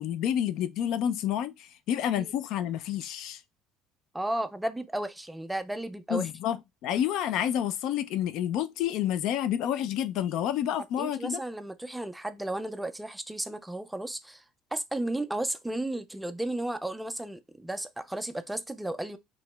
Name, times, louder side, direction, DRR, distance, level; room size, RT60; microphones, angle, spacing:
voice 1, 0.0-3.4 6.1-11.4, left 10 dB, 55° left, 0.5 m, -29 dB
voice 2, 4.1-6.3 11.0-14.4 14.7-19.2, right 1 dB, 5° right, 0.3 m, -34 dB
4.9 x 2.9 x 3.3 m
cardioid pair, 170°, 0 cm